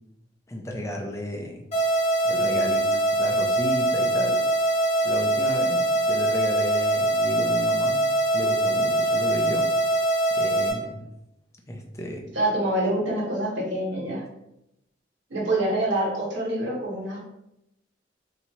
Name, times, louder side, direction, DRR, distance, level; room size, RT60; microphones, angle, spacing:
voice 1, 0.5-1.6 2.2-4.4 5.0-8.1 8.3-9.7 10.3-11.0 11.7-12.2, left 1 dB, 15° left, 1 dB, 0.6 m, -33 dB
sound 1, 1.7-10.7, right 1 dB, 40° left, 1.1 m, -23 dB
voice 2, 12.3-14.2 15.3-17.2, right 1 dB, 80° right, -3 dB, 1.4 m, -26 dB
2.9 x 2.8 x 4.4 m, 0.84 s
head